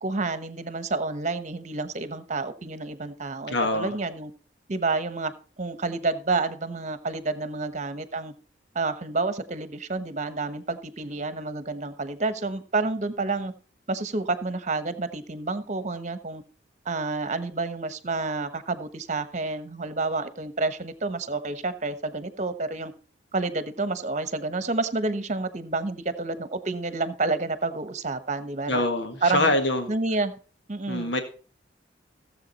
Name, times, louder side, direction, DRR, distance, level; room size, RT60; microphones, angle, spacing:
voice 1, 0.0-4.3 4.7-5.3 5.6-8.3 8.7-13.5 13.9-16.4 16.8-22.9 23.3-28.8 29.2-29.5 29.9-30.3 30.7-31.1, right 3 dB, 40° right, 12 dB, 1.1 m, -29 dB
voice 2, 3.5-3.9 28.7-29.9 30.9-31.2, left 2 dB, 70° left, 6 dB, 1.7 m, -24 dB
16.5 x 7.7 x 4.1 m, 0.39 s
head